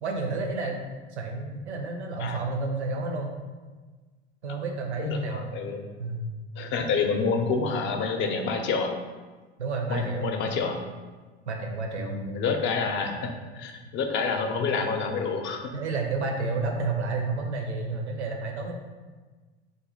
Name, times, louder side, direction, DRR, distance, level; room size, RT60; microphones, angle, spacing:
voice 1, 0.0-0.8 1.1-3.3 4.4-5.5 6.0-6.3 9.6-10.3 11.5-12.2 15.7-18.7, right 3 dB, 80° right, 3 dB, 0.7 m, -30 dB
voice 2, 5.0-5.8 6.6-8.9 9.9-10.8 12.0-15.6, left 4 dB, 35° left, 5 dB, 0.6 m, -28 dB
4.0 x 2.7 x 3.7 m, 1.4 s
figure-of-eight pair, 80°, 33 cm